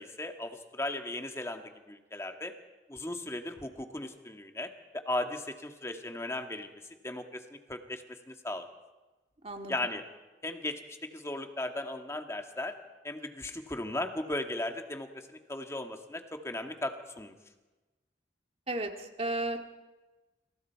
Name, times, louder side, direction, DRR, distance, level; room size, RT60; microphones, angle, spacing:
voice 1, 0.0-2.5 2.9-8.7 9.7-10.0 10.4-12.8 13.0-17.3, left 1 dB, 15° left, 5 dB, 1.7 m, -37 dB
voice 2, 18.7-19.6, right 2 dB, 35° right, 4 dB, 2.1 m, -34 dB
29.5 x 26.5 x 4.7 m, 1.2 s
head